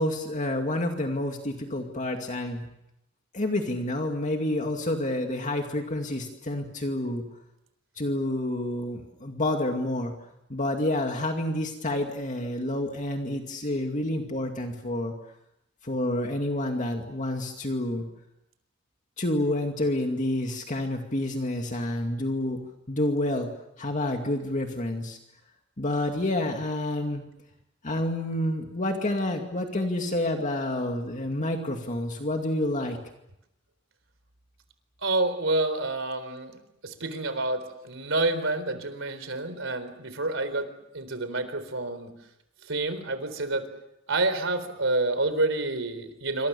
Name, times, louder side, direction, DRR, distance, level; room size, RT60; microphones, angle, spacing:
voice 1, 0.0-2.7 3.3-7.2 8.0-10.1 10.5-15.1 15.8-18.1 19.2-22.6 22.9-23.5 23.8-25.2 25.8-27.2 27.8-33.0, left 1 dB, 40° left, 3 dB, 2.3 m, -29 dB
voice 2, 35.0-40.7 40.9-42.1 42.6-43.7 44.1-46.5, right 2 dB, 70° right, 11 dB, 4.0 m, -28 dB
28.0 x 25.5 x 7.0 m, 0.85 s
head